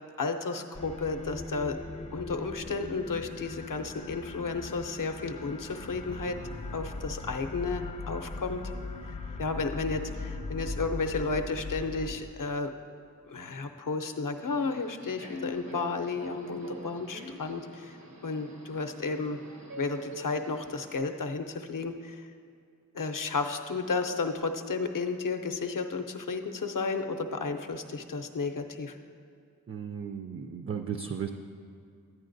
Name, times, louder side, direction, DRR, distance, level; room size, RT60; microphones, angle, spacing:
voice 1, 0.2-1.8 2.1-6.4 6.7-8.6 9.1-12.7 13.3-18.0 18.2-19.4 19.8-22.2 22.9-29.0, left 4 dB, 65° left, 6 dB, 0.6 m, -33 dB
sound 1, 0.7-12.2, left 3 dB, 20° left, 0.4 m, -40 dB
Subway metro underground, 14.4-21.0, right 1 dB, 80° right, 0.9 m, -45 dB
voice 2, 29.7-31.3, right 7 dB, 40° right, 5 dB, 0.4 m, -35 dB
11.0 x 8.8 x 2.6 m, 2.4 s
wide cardioid pair, 40°, 34 cm